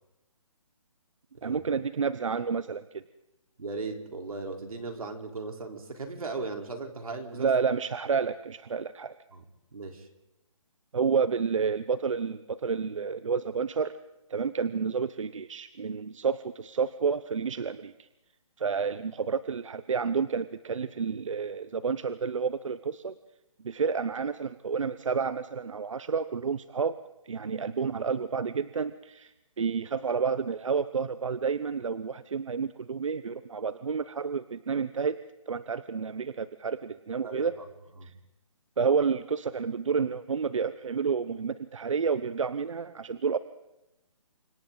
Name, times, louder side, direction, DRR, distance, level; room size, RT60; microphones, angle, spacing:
voice 1, 1.4-3.0 7.3-9.1 10.9-13.9 14.3-18.1 18.6-23.1 23.6-27.0 27.2-29.3 29.6-35.2 35.5-37.6 38.0-38.1 38.8-43.4, right 5 dB, 65° right, 14 dB, 0.8 m, -30 dB
voice 2, 3.6-7.5 9.3-9.4 9.7-10.1 37.2-37.5 38.0-38.1, right 3 dB, 90° right, 3 dB, 3.9 m, -37 dB
29.5 x 25.5 x 3.9 m, 0.92 s
hypercardioid pair, 180°, 18 cm